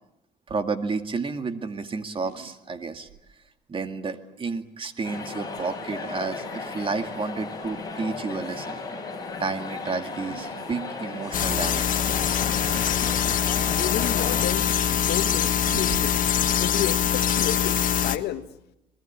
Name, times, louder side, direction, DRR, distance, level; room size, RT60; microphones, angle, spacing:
voice 1, 0.5-3.1 3.7-8.8 9.4-11.9, right 4 dB, 30° right, 2.1 m, -31 dB
sound 1, 2.1-3.3 4.9-5.1 5.9-6.2 7.0-7.2 7.6-7.8 10.2-10.6 11.2-11.3 12.7-12.9 13.9-14.2 15.6-16.0, right 9 dB, 70° right, 2.9 m, -42 dB
sound 2, 5.0-14.5, left 4 dB, 20° left, 7.6 m, -35 dB
sound 3, 11.3-18.2, left 9 dB, 50° left, 1.5 m, -23 dB
voice 2, 13.7-14.8 15.1-16.3 16.6-18.5, left 12 dB, 75° left, 1.3 m, -31 dB
27.5 x 20.5 x 8.6 m
cardioid pair, 110°, 17 cm